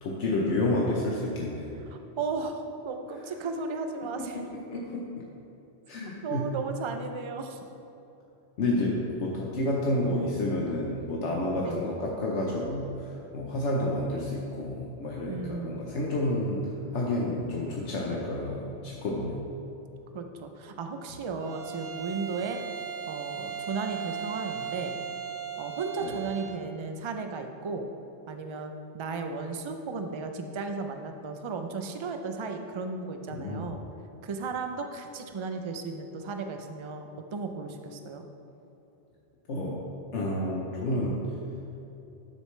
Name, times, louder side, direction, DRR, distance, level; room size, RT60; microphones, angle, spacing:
voice 1, 0.0-1.7 4.3-4.4 4.7-5.1 5.9-6.5 8.6-16.6 16.9-19.4 26.0-26.1 33.3-33.7 39.5-39.8 40.1-41.2, left 1 dB, 80° left, -3 dB, 1.2 m, -30 dB
voice 2, 1.9-4.5 6.2-7.6 11.6-11.9 15.3-15.8 20.1-22.6 23.1-24.9 25.6-27.9 28.3-33.8 34.2-38.2, right 4 dB, 40° right, 5 dB, 0.4 m, -35 dB
Bowed string instrument, 21.4-26.6, right 8 dB, 65° right, 1.0 m, -37 dB
12.0 x 6.5 x 3.2 m, 2.9 s
omnidirectional pair, 1.2 m